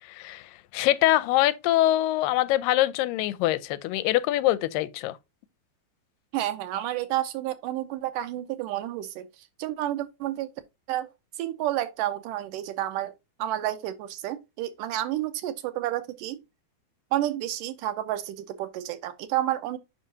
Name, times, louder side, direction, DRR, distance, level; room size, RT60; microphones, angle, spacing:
voice 1, 0.1-5.2, left 15 dB, 85° left, 2.2 m, -24 dB
voice 2, 6.3-9.3 9.6-10.5 10.9-11.1 11.4-13.1 13.4-16.4 17.1-19.8, right 13 dB, 80° right, 2.2 m, -30 dB
7.4 x 5.5 x 2.6 m
omnidirectional pair, 4.0 m